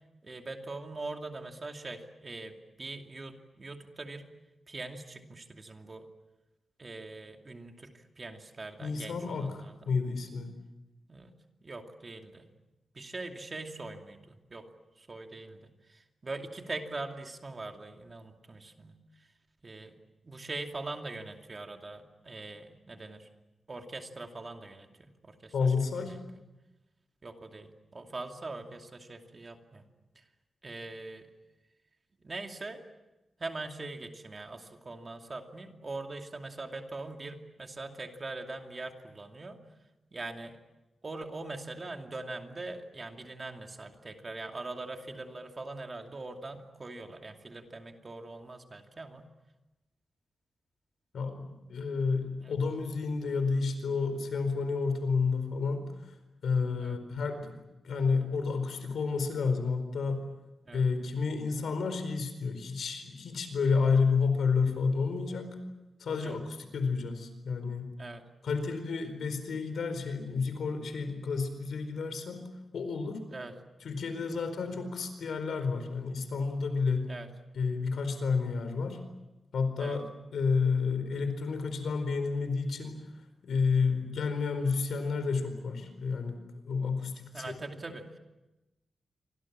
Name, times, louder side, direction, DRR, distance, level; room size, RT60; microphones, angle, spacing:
voice 1, 0.2-4.3 4.7-6.1 6.8-9.9 11.1-11.3 11.6-12.4 12.9-14.7 15.0-19.0 19.6-19.9 20.2-23.3 23.7-25.5 26.1-26.2 27.2-29.8 30.6-31.3 32.2-32.8 33.4-39.6 40.1-40.6 41.0-49.3 52.4-52.5 56.8-57.0 60.6-60.8 66.2-66.4 68.0-68.2 73.3-73.5 77.1-77.3 79.8-80.0 87.3-88.2, right 2 dB, 25° right, 4 dB, 2.6 m, -42 dB
voice 2, 8.8-10.5 25.5-26.2 51.1-55.9 56.4-57.6 57.8-60.2 60.7-65.6 66.0-67.9 68.4-72.4 72.7-73.2 73.8-77.1 77.5-79.0 79.5-80.0 80.3-83.0 83.4-86.4 86.7-87.5, left 5 dB, 80° left, 9 dB, 4.5 m, -30 dB
28.5 x 25.5 x 7.4 m, 1.0 s
wide cardioid pair, 170°, 0 cm